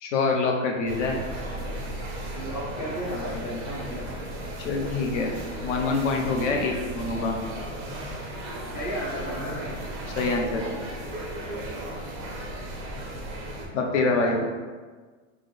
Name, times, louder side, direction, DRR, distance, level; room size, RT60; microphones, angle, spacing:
voice 1, 0.0-1.2 4.6-7.5 10.2-10.8 13.7-14.4, left 3 dB, 65° left, 2 dB, 0.7 m, -26 dB
sound 1, 0.9-13.7, right 1 dB, 20° right, 0.4 m, -35 dB
voice 2, 2.3-4.1 8.7-9.8 14.0-14.5, equal, 30° left, -6 dB, 0.5 m, -34 dB
3.5 x 2.0 x 3.4 m, 1.4 s
supercardioid pair, 150°, 40 cm